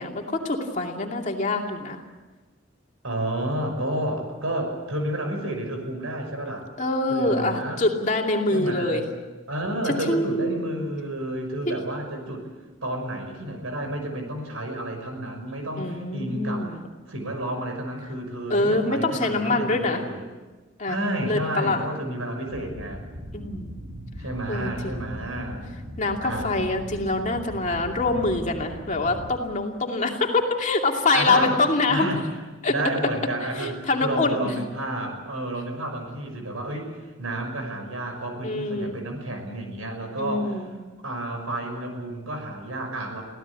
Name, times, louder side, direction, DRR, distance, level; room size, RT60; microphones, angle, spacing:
voice 1, 0.0-2.0 6.8-9.0 10.1-10.9 11.7-11.8 15.8-16.8 18.5-20.0 20.8-21.0 21.3-21.8 23.3-23.7 24.5-25.1 26.0-32.1 32.6-32.7 33.6-34.5 38.4-38.9 40.2-40.7, left 2 dB, 35° left, 1 dB, 2.6 m, -25 dB
voice 2, 3.0-6.7 7.1-7.8 8.5-9.0 9.5-12.5 12.8-16.8 17.1-20.3 20.9-23.0 24.2-25.6 26.2-26.5 31.1-31.6 31.9-32.2 32.7-36.9 37.2-40.6 41.0-43.2, right 1 dB, 90° right, 4 dB, 6.0 m, -31 dB
sound 1, 22.5-29.3, equal, 70° right, 5.4 m, -39 dB
24.5 x 16.5 x 8.5 m, 1.3 s
head